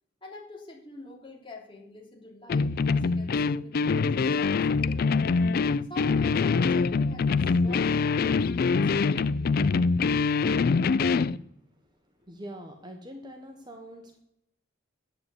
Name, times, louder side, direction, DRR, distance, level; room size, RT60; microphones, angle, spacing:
voice 1, 0.2-5.0 5.9-9.7, left 1 dB, 25° left, -1 dB, 3.0 m, -46 dB
sound 1, 2.5-11.4, left 4 dB, 45° left, 0.3 m, -24 dB
voice 2, 12.2-14.2, equal, 20° right, 4 dB, 1.2 m, -43 dB
8.9 x 8.4 x 8.5 m, 0.78 s
head